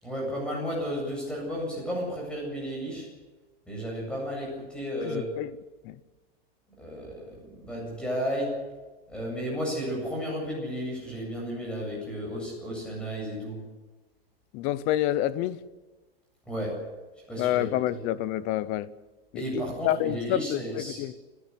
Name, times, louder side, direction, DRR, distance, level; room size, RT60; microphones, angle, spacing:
voice 1, 0.0-3.1 3.7-5.3 6.8-8.7 9.1-13.6 16.5-16.8 17.3-17.7 19.3-21.1, equal, 5° left, 7.9 m, -33 dB
voice 2, 5.0-5.5 5.8-6.0 14.5-15.6 17.4-18.9 19.3-21.1, left 13 dB, 25° left, 0.6 m, -28 dB
28.5 x 11.0 x 9.8 m
supercardioid pair, 170°, 30 cm